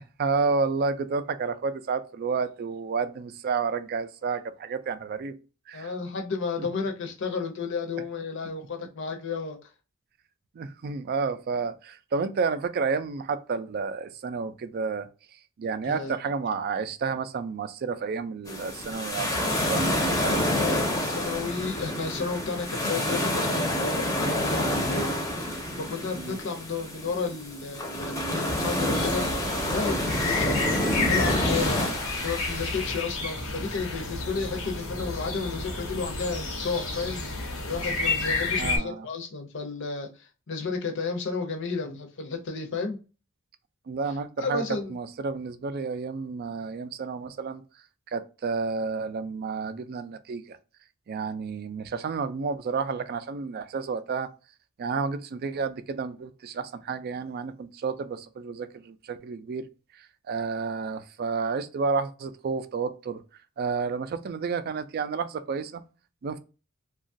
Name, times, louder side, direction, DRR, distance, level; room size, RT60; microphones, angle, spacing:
voice 1, 0.2-5.3 5.7-5.9 6.6-6.7 10.5-15.1 15.6-20.4 26.1-26.4 31.8-31.9 38.6-39.1 43.9-47.6 48.1-50.6 51.1-54.3 54.8-59.7 59.9-63.2 63.6-65.8 66.2-66.4, right 5 dB, 45° right, 0.3 m, -30 dB
voice 2, 5.7-9.6 15.8-16.1 19.9-25.1 25.4-29.2 29.7-30.7 31.1-31.9 32.2-37.2 37.6-43.0 44.4-44.9, left 4 dB, 60° left, 0.6 m, -32 dB
sound 1, 18.5-33.0, left 1 dB, 15° left, 0.6 m, -28 dB
sound 2, 28.9-38.8, left 3 dB, 90° left, 0.9 m, -31 dB
2.9 x 2.3 x 2.6 m
head